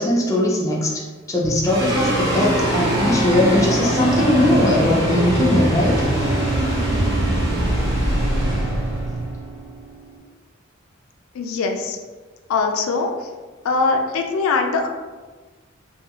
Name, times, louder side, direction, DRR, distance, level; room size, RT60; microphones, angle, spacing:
voice 1, 0.0-6.0, left 1 dB, 15° left, -4 dB, 0.4 m, -20 dB
sound 1, 1.4-9.3, right 3 dB, 85° right, 0.3 m, -30 dB
sound 2, 1.6-10.2, right 1 dB, 55° right, 0.8 m, -22 dB
voice 2, 11.3-12.0 12.5-13.3 13.6-14.9, left 4 dB, 85° left, 3 dB, 0.3 m, -21 dB
2.4 x 2.3 x 2.8 m, 1.4 s
head